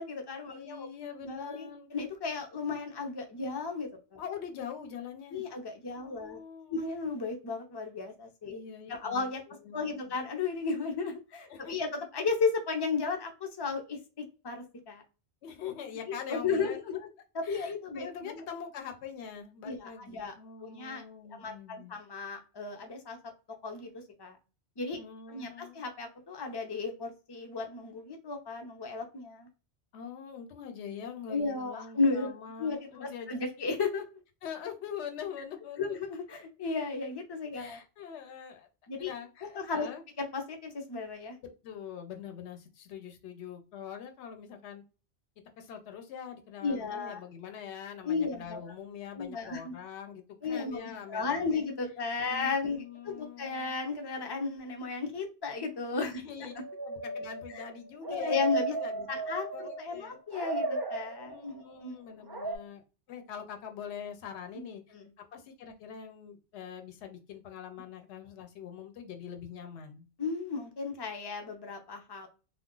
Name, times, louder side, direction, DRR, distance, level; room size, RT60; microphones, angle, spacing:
voice 1, 0.0-0.9 1.2-4.2 5.3-6.4 6.7-8.6 8.9-9.4 9.7-11.9 12.1-15.0 16.3-17.0 17.3-18.4 19.6-20.3 20.6-21.0 21.3-23.2 23.6-23.9 24.2-24.4 24.8-25.0 25.3-29.5 31.3-32.3 32.6-34.0 35.8-37.8 38.9-39.1 39.5-39.9 40.2-41.4 46.6-47.2 48.0-48.7 49.1-49.7 50.4-56.2 57.5-57.6 58.1-58.7 59.1-62.0 64.9-65.1 70.2-72.3, left 4 dB, 30° left, 3 dB, 0.5 m, -34 dB
voice 2, 0.5-1.9 4.2-5.5 6.0-6.9 8.5-10.1 11.5-11.9 15.4-17.1 17.4-22.0 25.0-25.8 29.9-33.7 34.4-36.0 37.5-38.7 39.0-40.0 41.4-44.8 45.6-51.7 52.2-53.8 56.2-56.5 56.8-60.2 61.3-62.8 63.1-64.8 65.2-70.1, left 8 dB, 75° left, 5 dB, 0.9 m, -44 dB
sound 1, 56.4-60.0 60.3-61.6 62.3-62.6, right 2 dB, 40° right, 0.3 m, -35 dB
2.4 x 2.1 x 3.7 m, 0.33 s
omnidirectional pair, 1.2 m